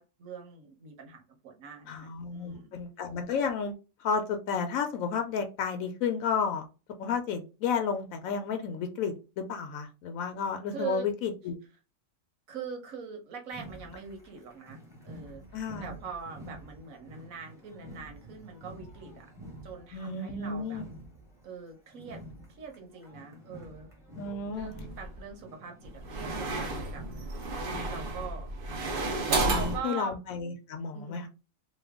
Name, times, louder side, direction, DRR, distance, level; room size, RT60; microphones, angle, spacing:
voice 1, 0.0-2.8 10.7-11.1 12.5-15.4 15.8-19.3 19.6-20.8 21.4-22.2 22.5-23.9 24.5-27.3 27.6-28.5 29.5-30.2 30.9-31.2, right 6 dB, 85° right, 1.3 m, -42 dB
voice 2, 1.9-3.7 4.0-6.7 7.0-11.6 15.5-16.0 19.9-20.8 24.2-24.7 29.4-31.3, left 6 dB, 85° left, 1.0 m, -32 dB
sound 1, 13.5-29.1, right 1 dB, 5° right, 0.7 m, -49 dB
sound 2, 24.6-25.2 25.8-29.8, right 2 dB, 50° right, 0.8 m, -32 dB
3.1 x 2.1 x 3.4 m
omnidirectional pair, 1.4 m